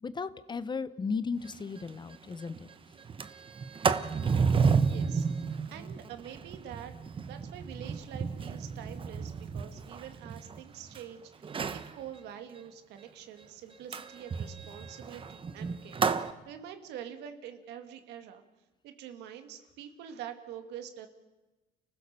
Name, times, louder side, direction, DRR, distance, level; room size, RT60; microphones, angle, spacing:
voice 1, 0.0-2.7, left 5 dB, 25° left, 15 dB, 0.9 m, -35 dB
Sliding door, 1.5-1.6 1.9-2.0 2.3-2.6 3.0-11.0 11.4-11.9 13.9-16.3, right 5 dB, 30° right, 1.1 m, -31 dB
voice 2, 4.8-6.9 7.2-18.4 18.8-21.1, right 9 dB, 85° right, 7 dB, 2.2 m, -46 dB
30.0 x 15.5 x 6.9 m, 1.1 s
cardioid pair, 110°, 17 cm